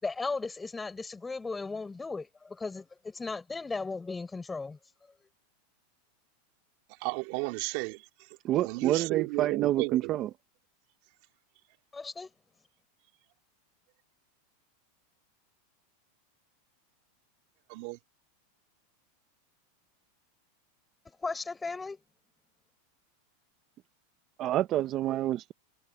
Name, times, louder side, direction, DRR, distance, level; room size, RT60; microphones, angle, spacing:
voice 1, 0.0-4.8 11.9-12.3 21.2-22.0, left 3 dB, 10° left, 4.9 m, -36 dB
voice 2, 7.0-8.1 8.6-10.2 17.7-18.0, right 27 dB, 45° right, 3.3 m, -33 dB
voice 3, 8.4-10.3 24.4-25.5, right 13 dB, 30° right, 1.0 m, -28 dB
supercardioid pair, 165°, 0 cm